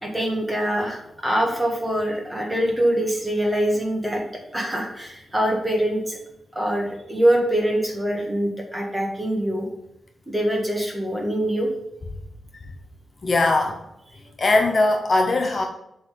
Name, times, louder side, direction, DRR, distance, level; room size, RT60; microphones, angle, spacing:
voice 1, 0.0-4.2 4.5-6.2 6.5-9.7 10.3-11.7, right 1 dB, 5° right, -1 dB, 1.7 m, -24 dB
voice 2, 13.2-13.8 14.4-15.7, left 2 dB, 40° left, 4 dB, 0.7 m, -20 dB
7.5 x 3.9 x 6.7 m, 0.83 s
wide cardioid pair, 170°, 0 cm